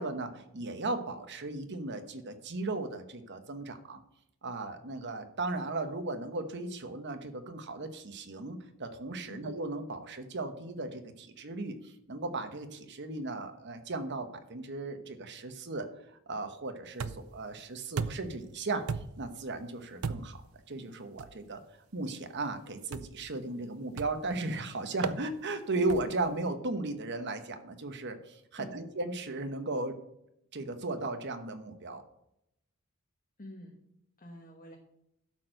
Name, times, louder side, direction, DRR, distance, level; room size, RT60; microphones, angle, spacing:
voice 1, 0.0-4.0 4.4-15.9 16.3-18.8 19.2-20.4 20.7-21.6 21.9-29.9 30.5-32.0, right 2 dB, 55° right, 8 dB, 1.1 m, -36 dB
sound 1, 17.0-17.4 18.0-18.4 18.9-19.3 20.0-20.5 21.2-21.4 22.9-23.3 24.0-24.3 25.0-25.2 25.9-26.2, right 5 dB, 75° right, 0.5 m, -36 dB
voice 2, 33.4-33.8 34.2-34.8, left 1 dB, 40° left, 0 dB, 1.3 m, -47 dB
12.0 x 4.5 x 6.5 m, 0.80 s
head